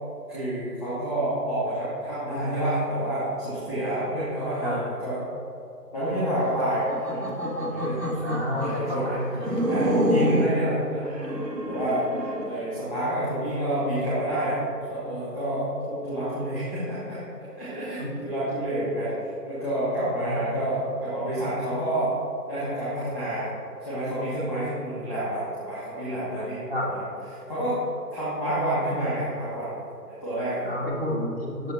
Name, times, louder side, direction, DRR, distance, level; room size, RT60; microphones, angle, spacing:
voice 1, 0.3-5.2 5.9-7.2 7.7-8.0 8.6-11.1 11.7-12.0 12.4-14.6 14.9-17.2 17.6-22.1 22.5-23.5 23.8-27.0 27.3-27.8 28.1-29.7 30.2-30.7, right 1 dB, 5° right, -12 dB, 1.7 m, -28 dB
sound 1, 6.7-8.8 9.4-10.6 11.1-12.5, equal, 85° right, 1.8 m, -27 dB
voice 2, 8.2-9.5 18.0-18.1 19.9-20.4 26.7-26.9 30.6-31.7, left 1 dB, 35° right, -5 dB, 1.7 m, -30 dB
9.2 x 6.7 x 4.4 m, 2.7 s
figure-of-eight pair, 160°, 49 cm